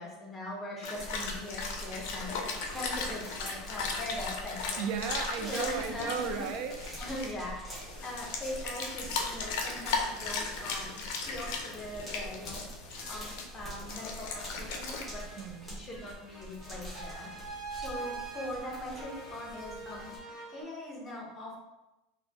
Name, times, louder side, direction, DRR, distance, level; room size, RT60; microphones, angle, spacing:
voice 1, 0.0-4.8 5.4-6.5 7.0-12.6 13.1-15.2 15.7-20.1 20.5-21.6, left 1 dB, 15° left, -2 dB, 0.7 m, -41 dB
sound 1, 0.8-7.3 7.8-13.4 13.9-15.0, left 4 dB, 60° left, 0.5 m, -37 dB
sound 2, 0.9-20.2, right 1 dB, ahead, 1.1 m, -45 dB
voice 2, 4.8-6.8 15.4-15.8, right 6 dB, 45° right, 5 dB, 0.4 m, -35 dB
sound 3, 13.0-13.6 13.9-20.6, right 3 dB, 20° right, 0.8 m, -45 dB
4.0 x 2.1 x 2.8 m, 1.0 s
supercardioid pair, 170°, 0 cm